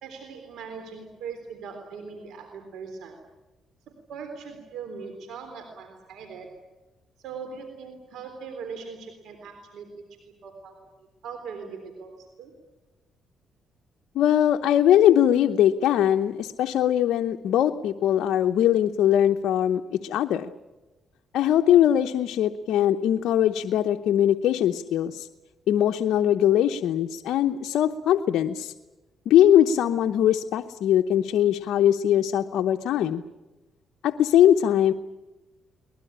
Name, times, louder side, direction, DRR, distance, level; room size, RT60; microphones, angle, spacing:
voice 1, 0.0-3.2 4.1-6.5 7.2-9.9 10.4-10.8 11.2-12.5, right 5 dB, 80° right, 5 dB, 3.6 m, -40 dB
voice 2, 14.1-20.5 21.3-25.3 25.7-28.7 29.3-33.2 34.0-34.9, left 11 dB, 80° left, 5 dB, 0.8 m, -21 dB
23.0 x 20.5 x 10.0 m, 1.1 s
cardioid pair, 90°, 0 cm